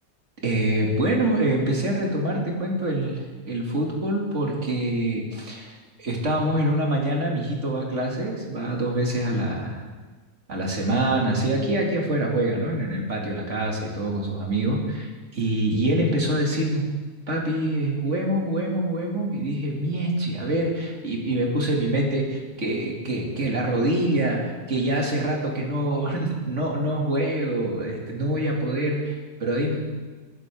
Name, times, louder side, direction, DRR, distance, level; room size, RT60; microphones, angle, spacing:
voice 1, 0.4-9.8 10.5-16.9 17.3-29.7, right 1 dB, 55° right, -1 dB, 2.6 m, -25 dB
20.5 x 11.0 x 3.5 m, 1.3 s
omnidirectional pair, 1.5 m